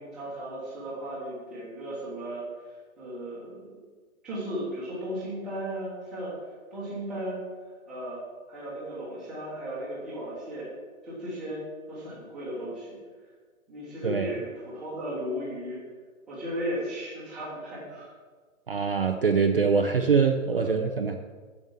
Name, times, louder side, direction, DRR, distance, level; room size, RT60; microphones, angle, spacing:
voice 1, 0.0-2.4 3.0-3.8 4.2-6.3 6.7-7.4 7.9-8.2 8.5-10.7 11.0-11.6 11.9-13.0 13.7-15.8 16.3-18.1 20.5-20.8, equal, ahead, -11 dB, 1.1 m, -35 dB
voice 2, 14.0-14.3 18.7-21.1, right 5 dB, 45° right, 4 dB, 0.5 m, -24 dB
7.3 x 7.1 x 7.1 m, 1.5 s
hypercardioid pair, 180°, 41 cm